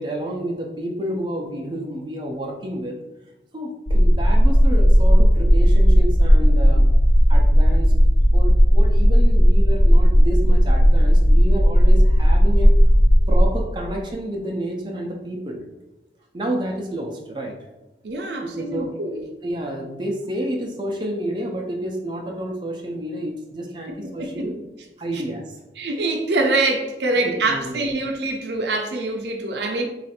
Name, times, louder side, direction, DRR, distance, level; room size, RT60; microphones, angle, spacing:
voice 1, 0.0-2.9 3.5-6.9 7.3-7.9 8.3-12.7 13.3-15.6 16.3-17.6 18.4-18.9 19.4-24.5 25.0-25.6 27.2-27.9, right 1 dB, 25° right, 0 dB, 0.4 m, -30 dB
sound 1, 3.9-13.5, equal, 60° left, 0.5 m, -14 dB
voice 2, 18.0-19.2 23.9-24.4 25.1-25.2 25.8-29.8, right 2 dB, 75° right, 3 dB, 0.5 m, -24 dB
3.1 x 2.4 x 4.2 m, 1.0 s
head